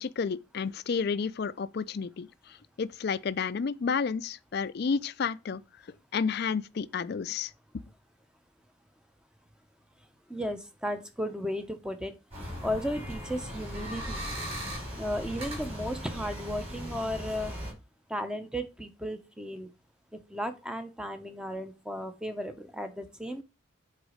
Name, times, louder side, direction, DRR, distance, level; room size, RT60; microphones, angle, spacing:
voice 1, 0.0-2.3 2.8-5.6 6.1-7.5, left 5 dB, 50° left, 0.4 m, -31 dB
voice 2, 10.3-12.1 12.6-14.3 15.0-17.5 18.1-19.7 20.3-23.4, equal, 5° right, 0.6 m, -34 dB
sound 1, 12.3-17.7, equal, 30° right, 4.6 m, -38 dB
8.0 x 4.0 x 4.9 m
head